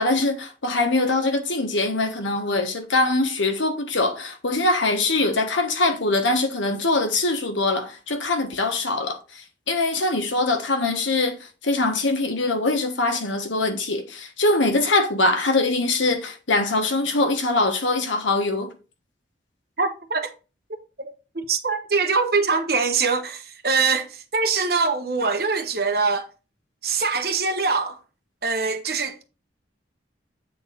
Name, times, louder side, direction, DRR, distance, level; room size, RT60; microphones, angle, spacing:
voice 1, 0.0-18.7, left 2 dB, 90° left, 1.3 m, -23 dB
voice 2, 19.8-20.3 21.0-26.3 26.8-28.0 28.4-29.2, right 4 dB, 55° right, 1.1 m, -23 dB
8.3 x 3.9 x 3.9 m
head